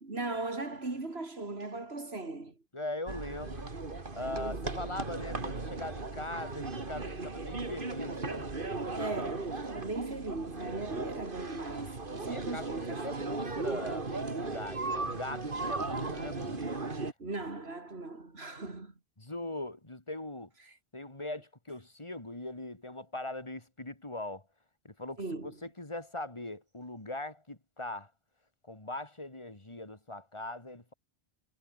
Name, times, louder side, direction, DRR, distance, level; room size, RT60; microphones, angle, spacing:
voice 1, 0.0-2.5 4.4-4.8 8.9-13.2 17.2-18.9 25.2-25.6, right 2 dB, 85° right, 3.6 m, -38 dB
voice 2, 2.7-3.7 4.1-8.5 12.3-16.7 19.2-20.5 20.9-24.4 24.8-28.1 28.6-30.9, left 2 dB, 30° left, 2.9 m, -41 dB
sound 1, 3.1-17.1, right 3 dB, 55° right, 2.6 m, -37 dB
omnidirectional pair, 1.0 m